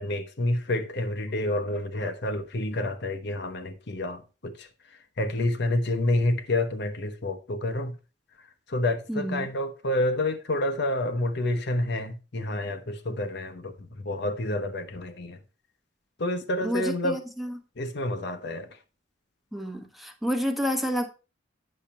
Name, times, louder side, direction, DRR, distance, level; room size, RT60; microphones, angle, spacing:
voice 1, 0.0-4.5 5.2-7.9 8.7-13.7 14.0-15.4 16.2-17.2 17.8-18.7, left 1 dB, 60° left, 1.0 m, -28 dB
voice 2, 9.1-9.5 16.6-17.6 19.5-21.1, equal, ahead, 1.1 m, -29 dB
8.9 x 6.5 x 4.3 m
head